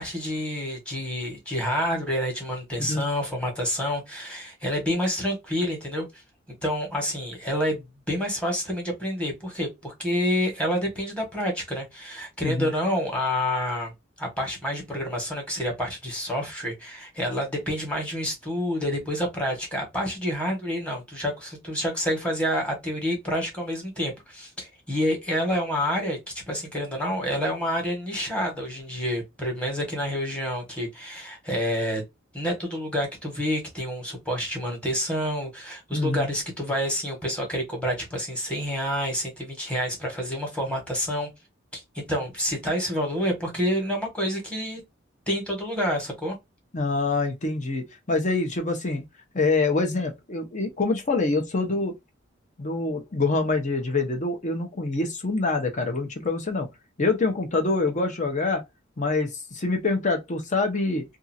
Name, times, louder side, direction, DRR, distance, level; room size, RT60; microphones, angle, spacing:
voice 1, 0.0-6.0 6.6-13.9 14.2-32.0 32.3-41.3 41.7-44.8 45.3-46.4, equal, 5° left, 1.3 m, -28 dB
voice 2, 35.9-36.3 46.7-49.0 49.3-51.9 52.6-56.7 57.0-58.6 59.0-61.0, left 3 dB, 40° left, 0.9 m, -25 dB
2.7 x 2.4 x 2.6 m
head